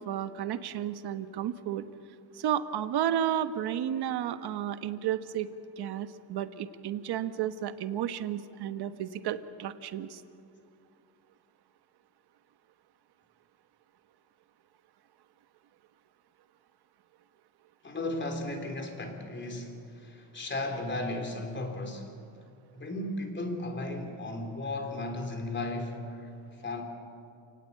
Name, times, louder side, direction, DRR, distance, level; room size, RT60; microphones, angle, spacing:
voice 1, 0.0-1.8 2.4-10.2, right 10 dB, 60° right, 10 dB, 1.3 m, -32 dB
voice 2, 17.8-22.2 22.7-26.8, left 2 dB, 25° left, 3 dB, 3.5 m, -35 dB
29.0 x 18.5 x 8.4 m, 2.5 s
cardioid pair, 150°, 45 cm